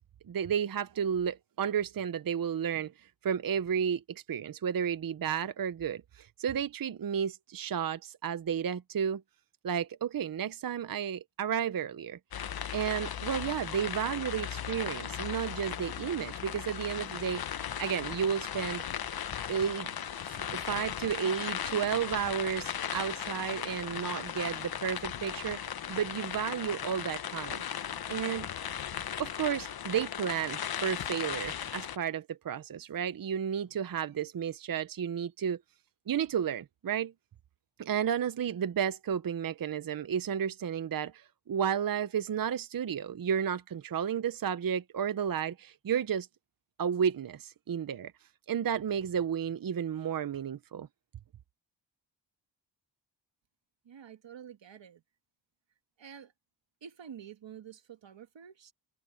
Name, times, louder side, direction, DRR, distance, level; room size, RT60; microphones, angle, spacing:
voice 1, 0.3-9.2 9.6-12.2 12.7-17.4 17.8-18.8 19.5-19.9 20.3-25.6 25.9-27.6 28.1-28.5 29.2-35.6 36.1-37.1 37.8-46.3 46.8-48.1 48.5-50.9, right 8 dB, 50° right, 0.7 m, -32 dB
sound 1, 12.3-32.0, left 9 dB, 55° left, 0.8 m, -37 dB
voice 2, 53.9-55.0 56.0-56.3 56.8-58.7, right 8 dB, 80° right, 1.9 m, -48 dB
wide cardioid pair, 135°, 44 cm